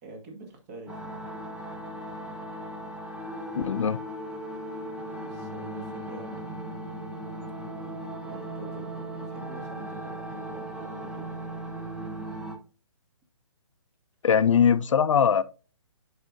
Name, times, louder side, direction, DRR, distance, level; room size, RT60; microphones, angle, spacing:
voice 1, 0.0-1.3 5.2-6.6 8.3-11.4, right 2 dB, 30° right, 1.9 m, -46 dB
sound 1, 0.9-12.6, right 1 dB, 5° right, 0.6 m, -37 dB
voice 2, 3.5-4.0 14.2-15.4, left 7 dB, 70° left, 0.5 m, -21 dB
10.5 x 4.9 x 2.6 m
hypercardioid pair, 145°, 16 cm